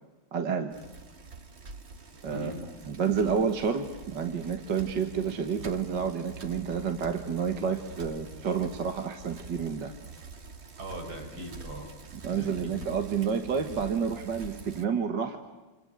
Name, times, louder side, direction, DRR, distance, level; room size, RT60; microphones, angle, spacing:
voice 1, 0.3-0.8 2.2-2.5 2.9-9.9 12.2-15.4, right 6 dB, 60° right, 6 dB, 2.1 m, -29 dB
Bicycle, 0.7-14.8, right 4 dB, 35° right, 1.5 m, -46 dB
voice 2, 2.3-2.7 10.8-11.9 12.3-12.8, equal, 75° right, 3 dB, 6.4 m, -40 dB
28.5 x 26.0 x 8.0 m, 1.2 s
omnidirectional pair, 2.3 m